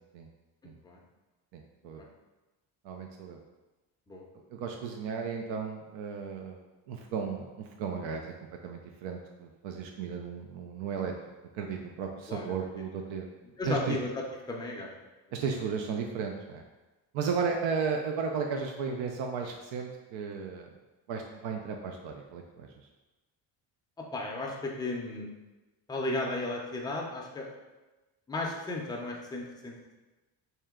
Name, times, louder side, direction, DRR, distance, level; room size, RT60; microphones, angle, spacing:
voice 1, 1.5-2.0 2.8-3.4 4.5-6.6 6.9-8.3 8.6-11.1 11.5-13.3 13.7-14.0 15.3-16.6 17.1-20.7 21.1-22.7, right 5 dB, 80° right, 3 dB, 0.5 m, -34 dB
voice 2, 13.6-14.9 24.0-25.3 25.9-27.5 28.3-29.9, left 2 dB, 10° left, -1 dB, 0.4 m, -34 dB
3.2 x 2.9 x 3.5 m, 1.1 s
cardioid pair, 135°, 46 cm